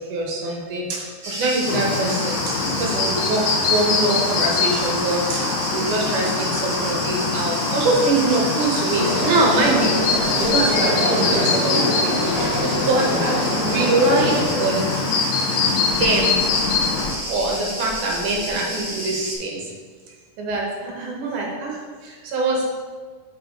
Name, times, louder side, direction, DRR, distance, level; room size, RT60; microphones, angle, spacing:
voice 1, 0.0-10.0 10.4-12.2 12.8-14.9 16.0-16.4 17.3-19.7 20.4-22.7, right 2 dB, 75° right, -1 dB, 2.5 m, -23 dB
Cricket, 1.2-19.4, equal, 25° right, 2.2 m, -30 dB
Chirp tweet, 1.7-17.1, left 5 dB, 75° left, 1.7 m, -24 dB
sound 1, 8.9-14.5, equal, 50° left, 1.0 m, -25 dB
6.7 x 5.2 x 3.7 m, 1.5 s
omnidirectional pair, 3.6 m